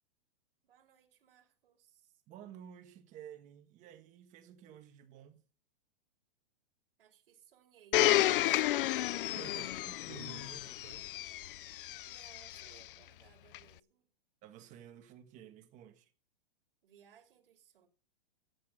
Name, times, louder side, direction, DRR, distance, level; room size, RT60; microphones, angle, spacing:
voice 1, 0.6-2.2 7.0-8.9 11.7-14.1 16.8-17.9, right 9 dB, 65° right, 5.1 m, -63 dB
voice 2, 2.3-5.4 9.2-11.1 14.4-16.1, right 10 dB, 25° right, 1.6 m, -52 dB
Domestic sounds home sounds, 7.9-12.8 13.5-13.6, left 14 dB, 65° left, 0.5 m, -32 dB
14.5 x 8.5 x 6.5 m
hypercardioid pair, 155°, 29 cm